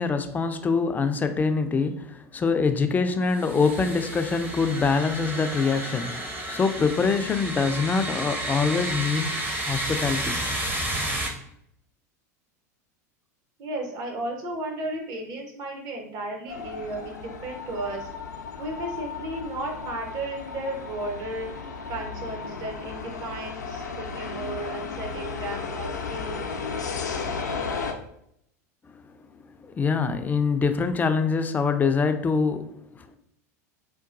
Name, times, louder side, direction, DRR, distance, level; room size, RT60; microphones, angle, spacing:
voice 1, 0.0-10.4 29.6-33.2, left 4 dB, 20° left, 8 dB, 0.3 m, -25 dB
sound 1, 3.3-11.3, right 1 dB, 20° right, 0.6 m, -31 dB
voice 2, 13.6-18.1 18.6-21.5 21.9-26.7, right 2 dB, 45° right, 1 dB, 0.9 m, -34 dB
sound 2, 16.5-27.9, left 5 dB, 90° left, 0.4 m, -34 dB
3.8 x 2.2 x 2.4 m, 0.73 s
hypercardioid pair, 90°, 9 cm